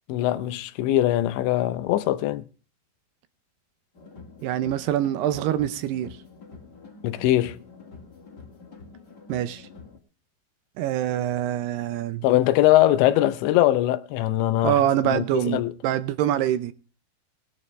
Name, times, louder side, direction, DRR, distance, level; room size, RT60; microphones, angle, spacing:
voice 1, 0.1-2.4 7.0-7.6 12.2-15.7, left 14 dB, 85° left, 3.1 m, -22 dB
sound 1, 3.9-10.0, left 4 dB, 35° left, 1.7 m, -46 dB
voice 2, 4.4-6.1 9.3-9.6 10.8-12.2 14.6-16.7, right 12 dB, 75° right, 2.7 m, -25 dB
19.5 x 11.0 x 3.3 m
omnidirectional pair, 5.1 m